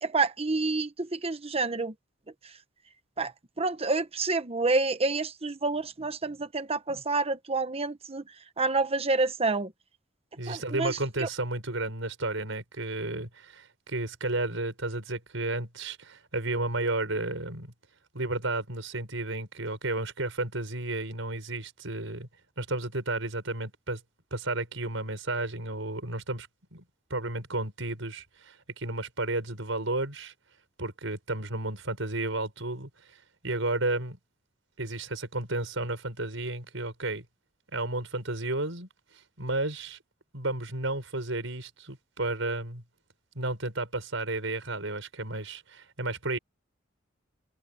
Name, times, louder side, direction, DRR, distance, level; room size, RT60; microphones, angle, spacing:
voice 1, 0.0-1.9 3.2-3.3 3.6-8.2 8.6-9.7 10.5-11.3, right 3 dB, 30° right, 1.1 m, -28 dB
voice 2, 10.4-17.7 18.1-22.3 22.6-24.0 24.3-26.8 27.1-30.3 30.8-34.2 34.8-37.2 37.7-38.9 39.1-40.0 40.3-42.8 43.3-46.4, right 2 dB, 80° right, 5.9 m, -32 dB
head